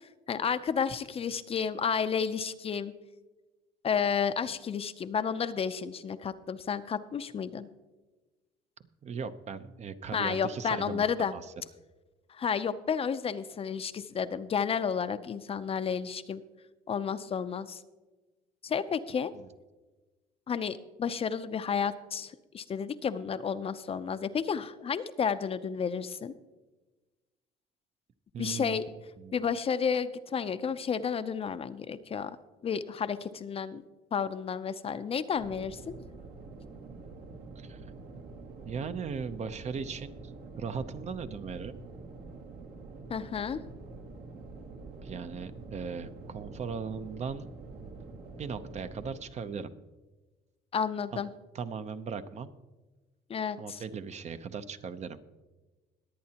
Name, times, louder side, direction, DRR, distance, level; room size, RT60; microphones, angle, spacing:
voice 1, 0.3-2.9 3.8-7.7 10.1-11.3 12.3-16.4 16.9-17.8 18.6-19.3 20.5-26.3 28.4-28.8 29.3-32.3 32.6-33.8 34.1-35.9 43.1-43.6 50.7-51.3 53.3-53.8, left 6 dB, 35° left, 12 dB, 0.5 m, -31 dB
voice 2, 9.0-11.4 19.3-19.5 28.3-28.8 29.2-29.3 37.6-37.8 38.6-40.1 40.6-41.7 45.0-47.5 48.4-49.7 51.1-51.2 51.5-52.5 53.6-55.2, right 6 dB, 40° right, 11 dB, 0.7 m, -38 dB
sound 1, 35.3-49.2, right 3 dB, 65° right, 1.7 m, -46 dB
21.5 x 8.6 x 2.9 m, 1.2 s
cardioid pair, 110°, 17 cm